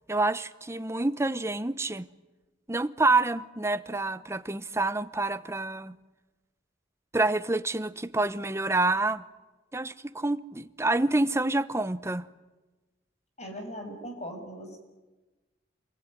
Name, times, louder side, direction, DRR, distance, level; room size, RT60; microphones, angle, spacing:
voice 1, 0.1-2.0 2.7-5.9 7.1-9.2 9.7-12.3, right 2 dB, 15° right, 0.8 m, -27 dB
voice 2, 13.4-14.8, equal, 35° left, 6.5 m, -39 dB
28.0 x 22.0 x 9.7 m
head